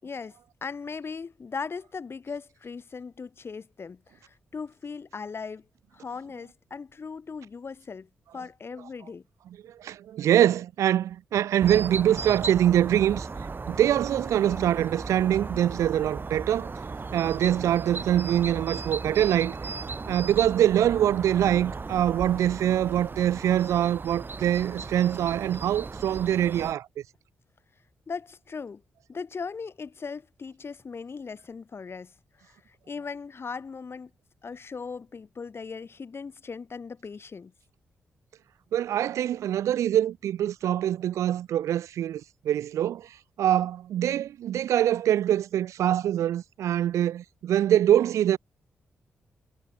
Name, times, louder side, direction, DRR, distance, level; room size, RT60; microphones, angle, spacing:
voice 1, 0.0-5.6 5.9-9.2 28.1-28.8 29.1-32.1 32.4-34.1 34.4-37.5, left 5 dB, 50° left, 6.0 m, -38 dB
voice 2, 9.8-13.3 13.7-16.7 17.1-19.5 20.1-26.9 38.7-43.1 43.4-48.4, right 11 dB, 75° right, 0.4 m, -24 dB
sound 1, 11.6-26.7, right 4 dB, 40° right, 5.3 m, -36 dB
supercardioid pair, 45°, 5 cm